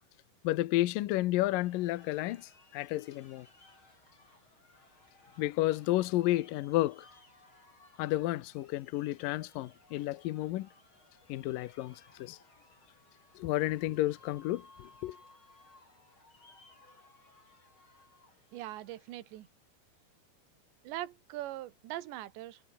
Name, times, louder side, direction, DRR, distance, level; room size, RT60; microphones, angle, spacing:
voice 1, 0.4-3.5 5.4-7.1 8.0-10.7 11.3-12.4 13.4-15.2, left 17 dB, 85° left, 1.9 m, -31 dB
sound 1, 1.5-19.5, left 2 dB, 25° left, 7.9 m, -61 dB
voice 2, 18.5-19.5 20.8-22.6, right 14 dB, 75° right, 3.7 m, -41 dB
omnidirectional pair, 5.2 m